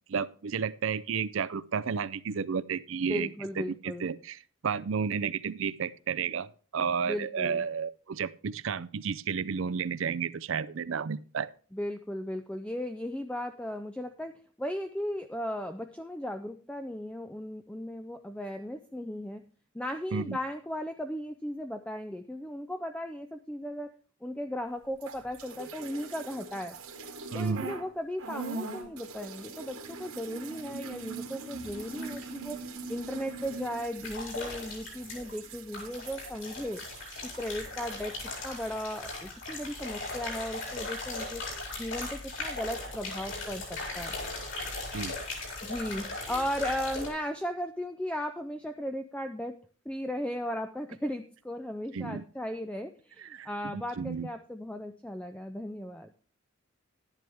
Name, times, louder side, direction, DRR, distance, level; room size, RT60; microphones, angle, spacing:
voice 1, 0.1-3.3 3.6-11.5 20.1-20.4 27.3-27.7 44.9-45.1 51.9-52.2 53.2-54.3, right 6 dB, 60° right, 17 dB, 0.5 m, -32 dB
voice 2, 3.1-4.1 7.1-7.7 11.7-14.3 14.6-19.4 19.7-23.9 24.2-26.8 27.3-32.6 32.9-36.8 37.2-38.2 38.4-41.4 41.8-44.1 45.6-49.6 49.9-56.1, equal, 5° left, 7 dB, 0.4 m, -36 dB
sound 1, 24.9-27.9 28.2-40.1 40.3-41.3, right 4 dB, 85° right, 2.1 m, -43 dB
sound 2, 31.6-32.3 34.0-35.5 35.7-47.1, left 2 dB, 60° left, 5.3 m, -38 dB
12.0 x 10.5 x 3.4 m, 0.40 s
head